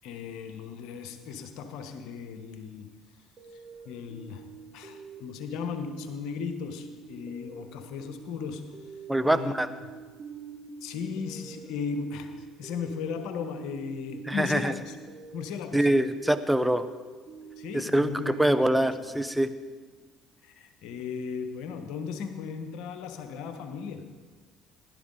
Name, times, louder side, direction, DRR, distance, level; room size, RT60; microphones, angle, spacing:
voice 1, 0.0-3.0 3.8-8.8 9.2-9.5 10.8-15.0 15.3-15.9 17.6-18.9 20.4-24.1, left 6 dB, 70° left, 7 dB, 1.1 m, -36 dB
sound 1, 3.4-19.7, right 5 dB, 40° right, 2.2 m, -46 dB
voice 2, 9.1-9.7 14.3-14.7 15.7-16.9 17.7-19.5, right 1 dB, 5° right, 11 dB, 0.8 m, -24 dB
16.0 x 11.5 x 3.9 m, 1.4 s
hypercardioid pair, 60°, 0 cm